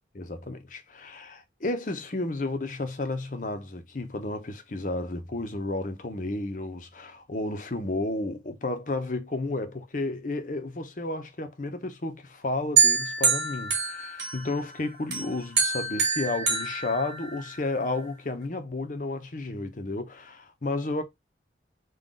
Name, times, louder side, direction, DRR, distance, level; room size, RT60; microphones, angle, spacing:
voice 1, 0.2-21.0, left 2 dB, 45° left, 0.7 m, -32 dB
sound 1, 12.8-14.7 15.1-17.6, right 5 dB, 75° right, 1.9 m, -26 dB
3.8 x 2.4 x 3.7 m
head